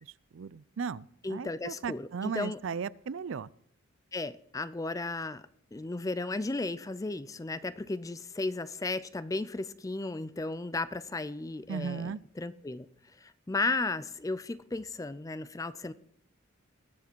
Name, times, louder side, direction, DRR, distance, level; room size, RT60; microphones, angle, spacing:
voice 1, 0.0-3.5 11.7-12.2, right 6 dB, 70° right, 0.4 m, -36 dB
voice 2, 1.2-2.6 4.1-5.4 5.7-12.9 13.2-15.9, left 2 dB, 15° left, 0.4 m, -34 dB
20.0 x 7.4 x 4.5 m
head